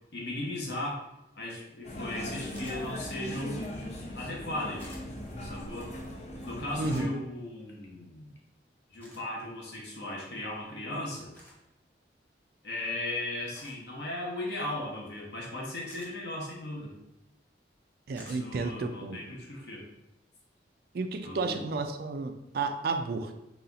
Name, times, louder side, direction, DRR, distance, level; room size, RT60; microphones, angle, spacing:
voice 1, 0.1-1.0 1.3-3.6 4.1-5.0 5.4-5.9 6.4-8.3 8.9-11.3 12.6-17.0 18.2-19.8 21.2-21.7, left 1 dB, 65° left, -3 dB, 0.9 m, -37 dB
sound 1, 1.8-7.0, left 1 dB, 35° left, 0.5 m, -39 dB
sound 2, 2.5-2.8 4.8-5.0 6.8-7.1 9.0-9.2 11.3-11.6 13.5-13.8 15.9-16.1 18.2-18.4, equal, 10° left, 0.8 m, -50 dB
voice 2, 18.1-19.2 20.9-23.3, right 3 dB, 55° right, 7 dB, 0.4 m, -32 dB
4.1 x 2.4 x 3.8 m, 0.89 s
head